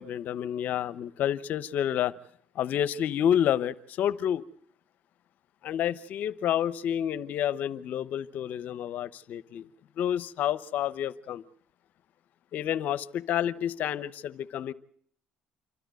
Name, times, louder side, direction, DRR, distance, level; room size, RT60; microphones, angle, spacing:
voice 1, 0.0-2.1 2.5-4.4 5.6-9.7 10.0-11.4 12.5-14.7, left 10 dB, 65° left, 0.9 m, -29 dB
27.5 x 12.5 x 9.2 m
supercardioid pair, 90°, 3 cm